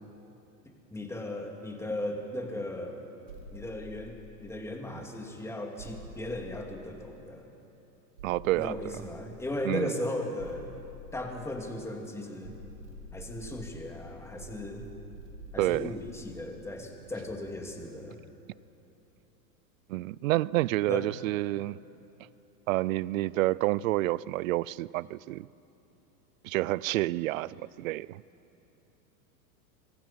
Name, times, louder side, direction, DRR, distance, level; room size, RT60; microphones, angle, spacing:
voice 1, 0.9-3.0 3.5-7.5 8.5-10.7 11.1-12.6 13.1-14.8 15.5-18.2 20.9-21.1, left 1 dB, 5° left, 2 dB, 2.5 m, -37 dB
sound 1, 3.3-4.8 5.8-7.4 8.2-9.5 10.4-12.0 12.4-17.7, left 1 dB, 90° right, 4.4 m, -48 dB
voice 2, 8.2-8.8 9.7-9.9 15.6-15.9 19.9-21.8 22.7-25.5 26.4-28.2, right 17 dB, 55° right, 22 dB, 0.5 m, -29 dB
26.0 x 23.0 x 5.7 m, 2.9 s
hypercardioid pair, 125°, 50 cm